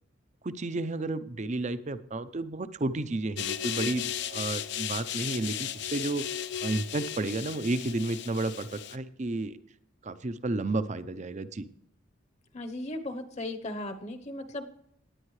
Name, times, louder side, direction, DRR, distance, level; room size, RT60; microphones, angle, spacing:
voice 1, 0.4-6.2 6.6-9.6 10.0-11.6, right 2 dB, 35° right, 13 dB, 0.6 m, -32 dB
sound 1, 3.4-9.0, left 10 dB, 60° left, 0.6 m, -35 dB
voice 2, 12.5-14.7, left 1 dB, 35° left, 8 dB, 0.9 m, -36 dB
18.0 x 9.9 x 3.2 m, 0.71 s
head